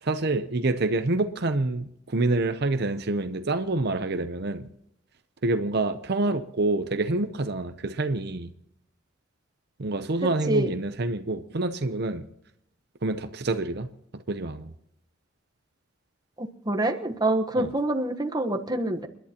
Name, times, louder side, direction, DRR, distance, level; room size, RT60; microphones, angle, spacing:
voice 1, 0.0-4.7 5.4-8.5 9.8-12.3 13.0-13.9 14.3-14.7 17.5-17.7, right 2 dB, 55° right, 9 dB, 0.7 m, -27 dB
voice 2, 16.4-19.1, right 1 dB, 20° right, 5 dB, 1.1 m, -26 dB
29.5 x 11.0 x 2.9 m, 0.76 s
head